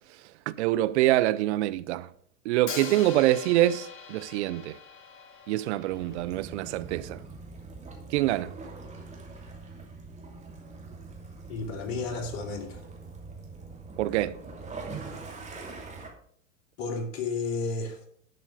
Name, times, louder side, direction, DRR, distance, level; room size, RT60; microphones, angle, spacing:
voice 1, 0.5-2.1 2.5-4.7 5.5-7.2 8.1-8.5 14.0-14.4, right 15 dB, 60° right, 0.6 m, -25 dB
Hi-hat, 2.7-6.6, left 6 dB, 30° left, 1.9 m, -42 dB
Waves surf / Splash splatter / Trickle dribble, 5.9-16.1, right 3 dB, 15° right, 2.8 m, -43 dB
voice 2, 11.5-12.8 16.8-18.0, left 3 dB, 50° left, 2.6 m, -32 dB
11.5 x 5.8 x 5.1 m
hypercardioid pair, 105°, 40 cm